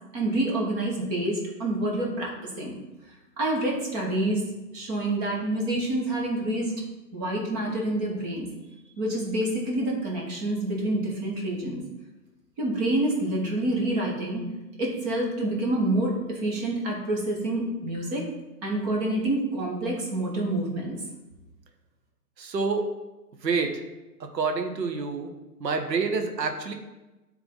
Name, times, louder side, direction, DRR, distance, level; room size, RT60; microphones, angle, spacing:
voice 1, 0.1-2.7 3.4-4.4 4.7-6.8 7.1-8.5 9.0-11.8 12.6-14.5 14.8-18.2 18.6-21.0, right 1 dB, 25° right, -2 dB, 1.3 m, -27 dB
voice 2, 22.4-22.8 23.4-23.7 24.3-25.3 25.6-26.7, right 4 dB, 90° right, 5 dB, 1.3 m, -27 dB
9.2 x 3.6 x 3.8 m, 1.1 s
hypercardioid pair, 155°, 49 cm